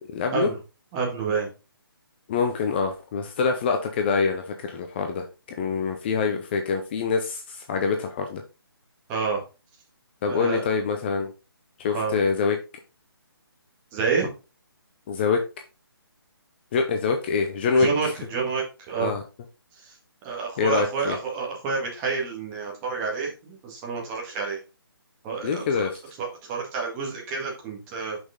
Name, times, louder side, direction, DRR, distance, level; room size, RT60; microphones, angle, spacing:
voice 1, 0.1-0.5 2.3-8.4 10.2-11.3 11.8-12.6 15.1-15.4 16.7-18.1 19.0-19.2 20.6-21.2 25.4-26.0, left 5 dB, 25° left, 4 dB, 0.7 m, -25 dB
voice 2, 0.9-1.5 9.1-9.4 10.3-10.6 11.9-12.1 13.9-14.3 17.7-19.1 19.8-19.9 20.2-24.6 25.2-25.9 26.2-28.2, right 5 dB, 20° right, -1 dB, 1.8 m, -28 dB
6.1 x 5.3 x 3.7 m, 0.30 s
figure-of-eight pair, 150°, 13 cm